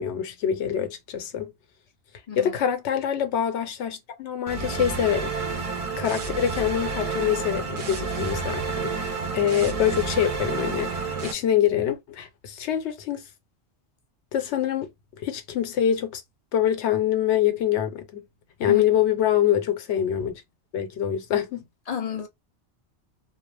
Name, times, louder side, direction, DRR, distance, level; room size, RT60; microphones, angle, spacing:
voice 1, 0.0-1.5 2.4-5.5 6.0-13.2 14.3-14.9 15.2-16.2 16.5-18.2 18.6-20.4 20.7-21.7, left 10 dB, 85° left, 0.9 m, -25 dB
voice 2, 2.3-2.6 18.7-18.8 21.9-22.3, left 8 dB, 55° left, 0.4 m, -31 dB
sound 1, 4.5-11.3, right 4 dB, 55° right, 0.4 m, -30 dB
2.3 x 2.0 x 3.1 m
omnidirectional pair, 1.1 m